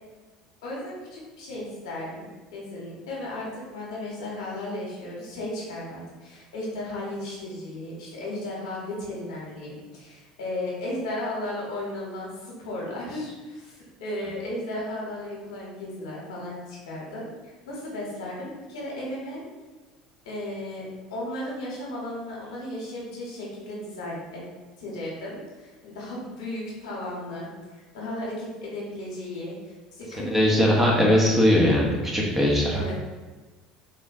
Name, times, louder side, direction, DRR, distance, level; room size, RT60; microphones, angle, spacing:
voice 1, 0.6-19.4 20.2-20.8 21.1-24.4 24.8-27.5 27.9-30.3 32.7-32.9, left 1 dB, 80° left, -4 dB, 1.1 m, -35 dB
voice 2, 30.2-32.8, left 1 dB, 10° right, -3 dB, 0.9 m, -20 dB
3.5 x 3.1 x 2.6 m, 1.3 s
hypercardioid pair, 75°, 3 cm